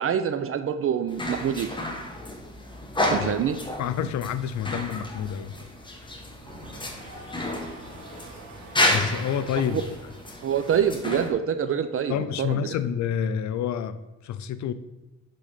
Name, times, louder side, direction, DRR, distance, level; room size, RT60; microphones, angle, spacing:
voice 1, 0.0-1.7 3.1-3.6 9.4-9.8 10.4-12.8, right 8 dB, 45° right, 10 dB, 0.5 m, -26 dB
sound 1, 1.1-11.3, left 1 dB, 15° left, 1.3 m, -31 dB
voice 2, 3.8-5.6 8.9-9.8 12.1-14.0 14.2-14.7, left 8 dB, 70° left, 13 dB, 0.5 m, -28 dB
sound 2, 6.4-11.6, right 2 dB, 75° right, 1.5 m, -47 dB
6.8 x 3.8 x 4.9 m, 1.1 s
cardioid pair, 90°, 30 cm